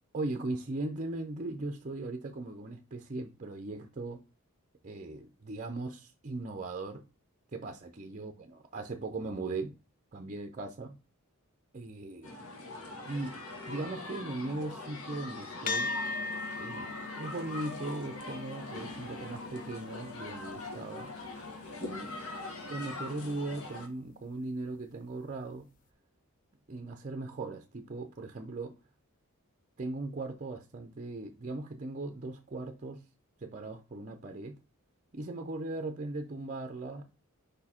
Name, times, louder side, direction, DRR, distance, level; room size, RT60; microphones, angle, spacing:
voice 1, 0.1-4.2 4.8-7.0 7.5-9.7 10.1-11.0 11.7-12.3 13.0-13.4 13.7-15.9 16.6-21.1 21.8-22.2 22.7-25.7 26.7-28.7 29.8-33.0 33.4-34.6 35.1-37.2, right 2 dB, 35° right, 0.6 m, -38 dB
sound 1, 12.2-23.9, left 2 dB, 65° left, 1.4 m, -42 dB
sound 2, 15.7-24.3, left 3 dB, 40° left, 0.7 m, -41 dB
5.1 x 4.5 x 4.2 m
head